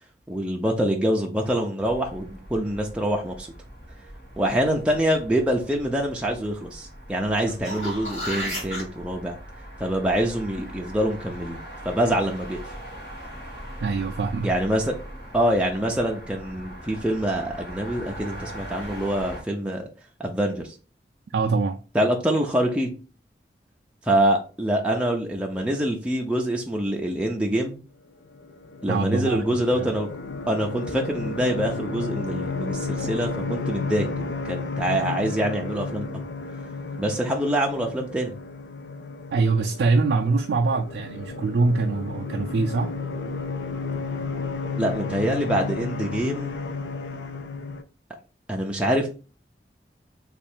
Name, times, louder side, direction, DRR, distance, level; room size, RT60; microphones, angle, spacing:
voice 1, 0.3-3.5 4.4-9.4 9.8-11.6 11.8-12.6 14.4-15.0 15.3-19.9 20.2-20.7 21.9-22.9 24.0-27.8 28.8-30.1 30.5-36.1 37.0-38.3 44.8-46.6 48.5-49.1, right 1 dB, 5° right, 0.5 m, -25 dB
sound 1, 1.8-19.4, equal, 60° left, 1.4 m, -41 dB
sound 2, 7.4-8.8 13.6-13.7, equal, 40° left, 1.8 m, -32 dB
voice 2, 13.8-14.5 21.3-21.8 28.9-29.9 39.3-43.0, right 3 dB, 80° right, 0.4 m, -24 dB
sound 3, 28.3-47.8, left 3 dB, 80° left, 0.4 m, -32 dB
3.2 x 2.4 x 4.3 m
head